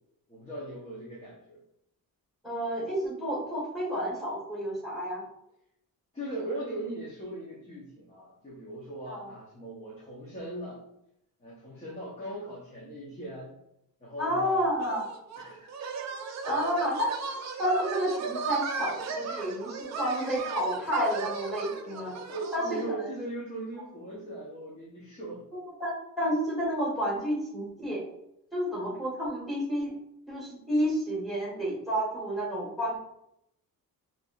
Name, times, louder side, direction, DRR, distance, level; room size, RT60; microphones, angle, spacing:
voice 1, 0.3-1.6 6.1-10.8 11.4-13.5 14.0-15.0 15.4-15.7 16.5-16.6 22.3-25.4, right 1 dB, 20° left, -7 dB, 0.8 m, -39 dB
voice 2, 2.4-5.2 9.1-9.3 14.2-15.1 16.4-17.1 17.6-22.1 22.5-22.6 23.0-23.1 25.5-28.1 28.5-29.9 30.3-33.0, equal, ahead, -6 dB, 1.5 m, -30 dB
sound 1, 14.8-22.9, right 4 dB, 50° right, 0.5 m, -36 dB
4.6 x 2.7 x 2.3 m, 0.78 s
wide cardioid pair, 175°, 35 cm